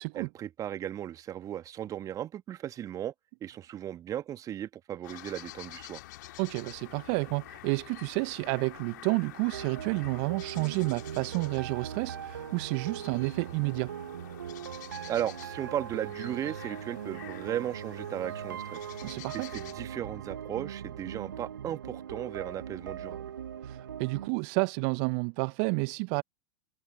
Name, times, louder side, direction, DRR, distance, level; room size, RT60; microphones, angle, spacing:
voice 1, 0.1-3.1 3.4-6.0 15.1-18.8 19.3-23.2, right 11 dB, 30° right, 1.4 m, -36 dB
sound 1, 5.0-19.7, left 15 dB, 65° left, 3.1 m, -49 dB
voice 2, 6.4-13.9 19.0-19.5 23.6-26.2, right 35 dB, 50° right, 0.9 m, -30 dB
sound 2, 9.5-24.3, right 9 dB, 75° right, 1.3 m, -40 dB
figure-of-eight pair, 85°, 11 cm